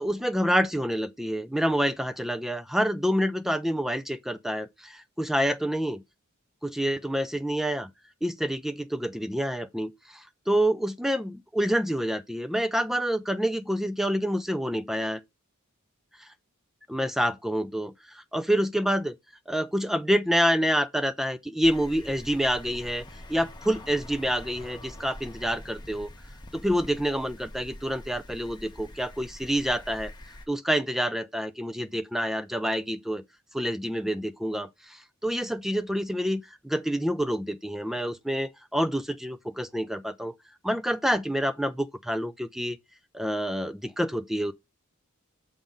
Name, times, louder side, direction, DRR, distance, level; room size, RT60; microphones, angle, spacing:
voice 1, 0.0-6.0 6.6-7.9 8.2-15.2 16.2-16.3 16.9-19.1 19.5-23.0 23.3-26.1 26.5-30.1 30.5-33.2 33.5-40.3 40.6-42.8 43.1-44.5, equal, ahead, 0.3 m, -27 dB
sound 1, 21.6-30.5, left 1 dB, 20° left, 1.1 m, -45 dB
7.2 x 3.7 x 5.1 m
head